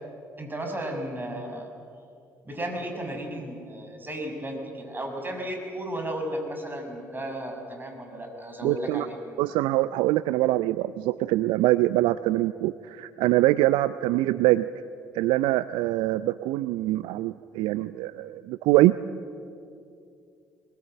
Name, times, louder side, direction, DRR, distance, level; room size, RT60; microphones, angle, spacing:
voice 1, 0.4-1.7 2.4-9.1, right 1 dB, 20° right, 3 dB, 6.2 m, -34 dB
voice 2, 8.6-9.1 9.4-14.7 15.1-19.0, right 17 dB, 65° right, 16 dB, 0.5 m, -24 dB
23.5 x 21.0 x 7.8 m, 2.4 s
figure-of-eight pair, 50°, 9 cm